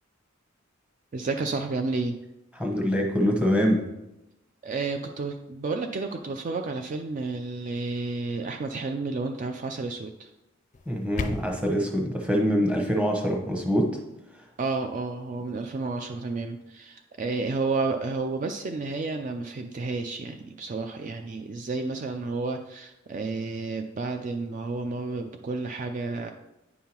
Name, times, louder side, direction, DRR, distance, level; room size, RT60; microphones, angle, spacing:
voice 1, 1.1-2.2 4.6-10.3 14.6-26.3, right 3 dB, 40° right, 5 dB, 0.4 m, -31 dB
voice 2, 2.5-3.8 10.9-13.9, equal, 5° right, 1 dB, 1.0 m, -24 dB
sound 1, 10.7-11.7, left 3 dB, 35° left, 0.5 m, -34 dB
9.3 x 5.5 x 2.9 m, 0.93 s
head